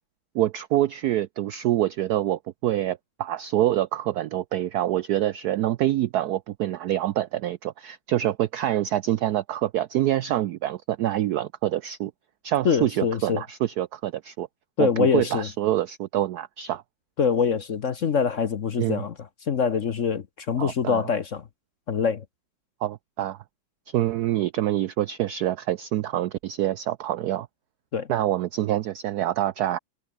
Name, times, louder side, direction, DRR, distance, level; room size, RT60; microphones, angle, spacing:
voice 1, 0.3-12.1 12.4-14.5 14.8-16.8 18.8-19.0 20.6-21.0 22.8-23.4 23.9-27.5 28.1-29.8, right 13 dB, 85° right, 0.8 m, -26 dB
voice 2, 12.6-13.4 14.8-15.5 17.2-21.5 21.9-22.2 27.9-28.1, left 6 dB, 50° left, 1.0 m, -24 dB
omnidirectional pair, 2.3 m